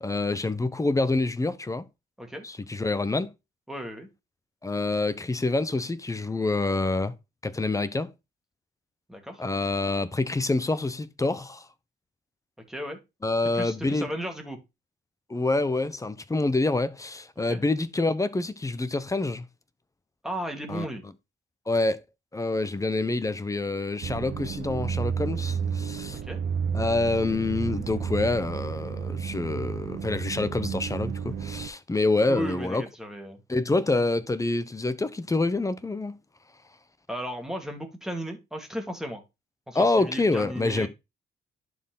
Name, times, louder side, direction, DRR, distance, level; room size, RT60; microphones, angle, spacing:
voice 1, 0.0-1.9 2.4-3.3 4.6-7.1 7.4-8.1 9.4-11.6 13.2-14.1 15.3-19.4 20.7-20.8 21.7-22.0 22.3-26.2 26.7-32.8 33.5-36.2 39.7-40.9, left 2 dB, 15° left, 0.9 m, -27 dB
voice 2, 3.7-4.1 9.1-9.4 12.7-13.0 13.5-14.6 17.5-17.6 20.2-21.0 26.2-26.4 32.3-33.4 37.1-39.2 39.7-40.9, equal, ahead, 2.5 m, -35 dB
sound 1, 24.0-31.7, right 7 dB, 55° right, 1.2 m, -32 dB
11.0 x 4.5 x 4.0 m
cardioid pair, 90°, 20 cm